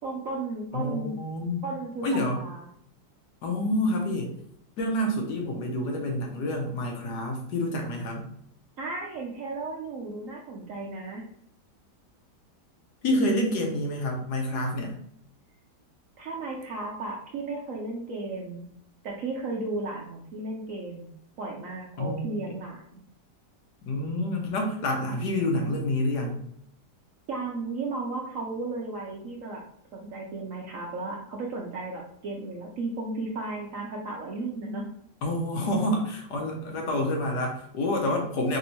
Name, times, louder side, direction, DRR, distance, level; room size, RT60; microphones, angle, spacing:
voice 1, 0.0-1.1 1.6-2.7 8.8-11.2 16.2-18.7 19.0-23.0 27.3-29.6 29.9-34.8, right 3 dB, 65° right, -1 dB, 0.8 m, -34 dB
voice 2, 0.7-1.6 2.0-2.4 3.4-4.3 4.8-8.2 13.0-14.9 22.0-22.3 23.8-26.4 35.2-38.6, left 1 dB, 65° left, 1 dB, 1.3 m, -28 dB
3.5 x 2.7 x 4.3 m, 0.68 s
omnidirectional pair, 1.9 m